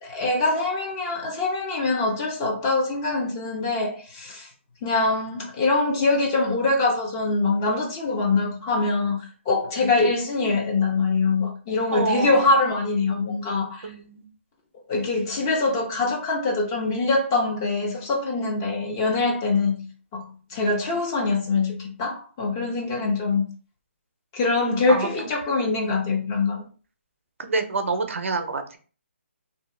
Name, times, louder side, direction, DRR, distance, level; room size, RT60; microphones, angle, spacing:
voice 1, 0.0-4.5 4.8-13.9 14.9-23.5 24.3-26.6, left 3 dB, 20° left, 0.4 m, -24 dB
voice 2, 11.9-12.5 13.8-14.3 23.0-23.3 24.9-25.1 27.4-28.8, right 4 dB, 80° right, 0.6 m, -27 dB
2.6 x 2.2 x 3.1 m
hypercardioid pair, 170°, 7 cm